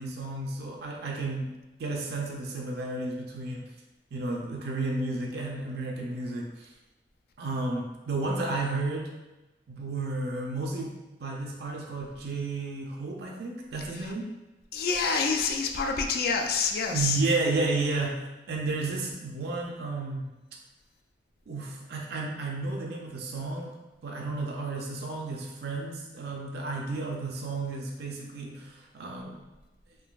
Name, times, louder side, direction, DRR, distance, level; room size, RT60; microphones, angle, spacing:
voice 1, 0.0-1.5 1.8-3.6 4.1-6.7 7.4-9.1 9.7-10.9 11.2-14.3 16.9-18.2 18.5-20.3 21.5-23.7 24.0-29.4, right 3 dB, 60° right, -1 dB, 0.4 m, -32 dB
voice 2, 14.7-17.2, left 5 dB, 55° left, 4 dB, 0.3 m, -27 dB
3.8 x 2.6 x 2.3 m, 1.1 s
head